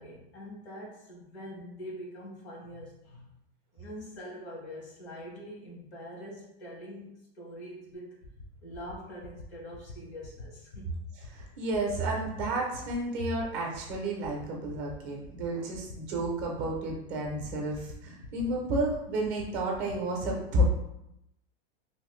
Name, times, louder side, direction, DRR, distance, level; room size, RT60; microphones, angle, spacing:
voice 1, 0.0-3.3 3.7-8.2 8.6-11.0, equal, 90° left, -2 dB, 1.4 m, -44 dB
sound 1, 7.9-8.0 8.2-8.5 8.7-8.9 9.2-9.4 9.7-9.9 10.2-10.4 10.7-11.0 11.2-11.5 11.7-11.9 12.2-12.4 12.7-12.9 13.2-13.4 13.7-14.0 14.2-14.4 14.7-15.0 15.2-15.4 15.7-15.9 16.2-16.5 16.7-16.9 17.2-17.4 17.7-17.9 18.2-18.4 18.7-18.9 19.2-19.4 19.7-20.0, left 3 dB, 70° left, 0.9 m, -45 dB
voice 2, 11.3-20.6, right 1 dB, 25° right, -1 dB, 0.5 m, -31 dB
3.1 x 2.4 x 3.0 m, 0.83 s
supercardioid pair, 165°, 32 cm